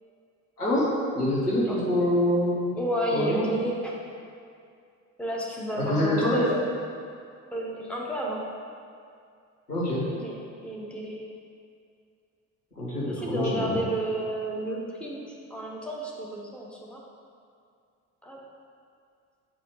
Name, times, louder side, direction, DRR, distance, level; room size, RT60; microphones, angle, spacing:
voice 1, 0.6-2.7 3.1-3.5 5.7-6.4 9.7-10.0 12.7-13.8, left 1 dB, 85° left, -8 dB, 1.7 m, -25 dB
voice 2, 2.8-3.9 5.2-6.6 7.5-8.4 10.1-10.4 10.6-11.2 13.1-15.2 15.5-17.0 18.2-18.4, right 1 dB, ahead, -3 dB, 1.2 m, -31 dB
8.1 x 4.8 x 4.8 m, 2.3 s
figure-of-eight pair, 55°, 44 cm